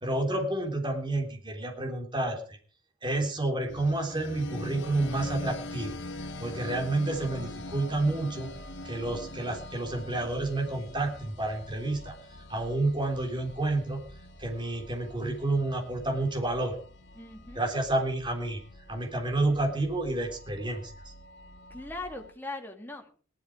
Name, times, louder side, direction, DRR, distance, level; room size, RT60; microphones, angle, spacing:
voice 1, 0.0-2.6 3.0-6.0 6.4-8.5 8.8-12.2 12.5-14.0 14.4-16.8 17.6-18.6 18.9-21.1, right 2 dB, 25° right, 3 dB, 3.5 m, -30 dB
sound 1, 3.7-22.3, left 1 dB, 60° left, 1.9 m, -44 dB
voice 2, 17.1-17.6 21.7-23.2, left 2 dB, 10° left, 3 dB, 2.2 m, -40 dB
18.5 x 12.0 x 4.9 m, 0.41 s
head